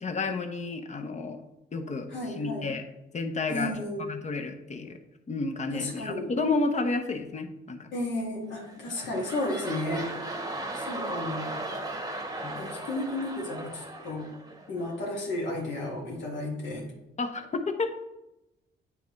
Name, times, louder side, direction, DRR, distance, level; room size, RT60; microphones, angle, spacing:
voice 1, 0.0-1.4 1.7-2.8 3.1-3.7 4.0-5.0 5.3-7.9 8.8-8.9 12.4-12.6 17.2-17.9, left 3 dB, 35° left, 6 dB, 0.8 m, -31 dB
voice 2, 2.1-2.7 3.5-4.0 5.7-6.3 7.9-10.1 10.7-11.6 12.5-14.3 14.7-16.9, left 1 dB, 70° left, -3 dB, 1.9 m, -33 dB
sound 1, 8.5-15.1 15.6-15.7, right 2 dB, 20° right, 1.0 m, -37 dB
9.1 x 3.5 x 3.2 m, 0.90 s
cardioid pair, 90°, 20 cm